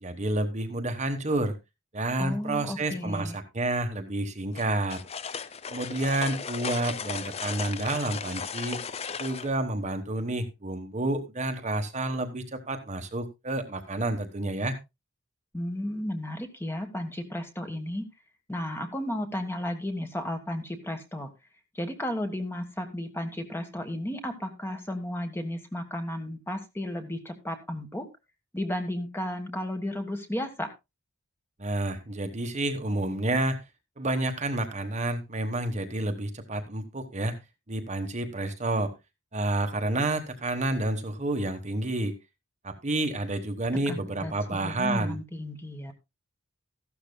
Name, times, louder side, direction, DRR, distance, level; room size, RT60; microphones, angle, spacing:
voice 1, 0.0-1.5 1.9-5.0 5.7-8.8 9.2-14.8 31.6-33.6 34.0-37.4 37.7-38.9 39.3-42.1 42.6-45.2, right 2 dB, 30° right, 6 dB, 1.2 m, -29 dB
voice 2, 2.2-3.3 15.5-18.1 18.5-21.3 21.7-28.0 28.5-30.7 43.9-45.9, left 1 dB, 10° left, 6 dB, 1.3 m, -33 dB
sound 1, 4.5-9.5, left 6 dB, 30° left, 0.5 m, -36 dB
14.5 x 12.0 x 2.2 m, 0.23 s
head